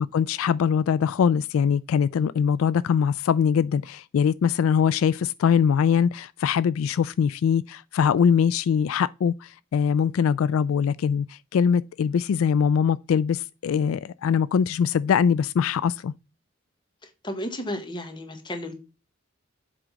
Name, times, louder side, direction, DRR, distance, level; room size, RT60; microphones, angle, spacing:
voice 1, 0.1-16.1, left 7 dB, 80° left, 0.3 m, -22 dB
voice 2, 17.0-18.7, left 1 dB, 25° left, 1.4 m, -33 dB
7.7 x 3.7 x 5.1 m
head